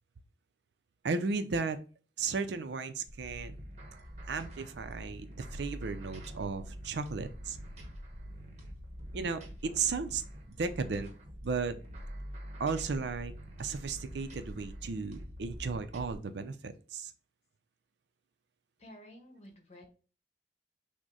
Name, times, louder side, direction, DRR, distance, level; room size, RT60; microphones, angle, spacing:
voice 1, 1.0-1.8 2.2-3.6 4.3-7.6 9.1-10.2 10.5-11.1 11.4-11.8 12.6-13.3 13.6-17.1, right 4 dB, 75° right, 10 dB, 0.5 m, -35 dB
sound 1, 3.1-16.1, equal, 40° right, 0.9 m, -45 dB
voice 2, 18.8-19.9, left 1 dB, 40° left, 3 dB, 1.2 m, -52 dB
6.1 x 2.1 x 3.9 m, 0.38 s
head